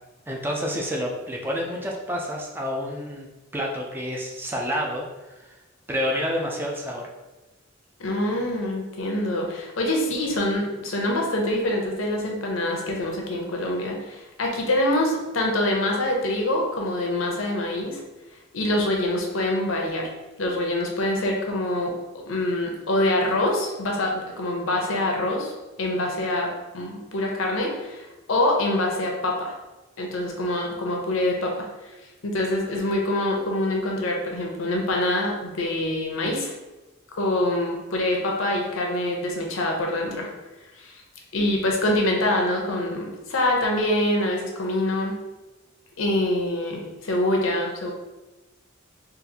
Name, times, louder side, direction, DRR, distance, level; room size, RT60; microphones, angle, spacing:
voice 1, 0.3-3.3 3.5-5.0 5.3-5.6 5.9-7.1, equal, 10° right, -1 dB, 0.4 m, -28 dB
voice 2, 8.0-18.0 18.5-20.1 20.4-29.5 30.0-31.7 32.2-36.5 37.1-40.3 40.8-41.0 41.3-45.2 46.0-47.9, left 1 dB, 75° left, 0 dB, 0.7 m, -25 dB
3.9 x 2.5 x 2.8 m, 1.1 s
head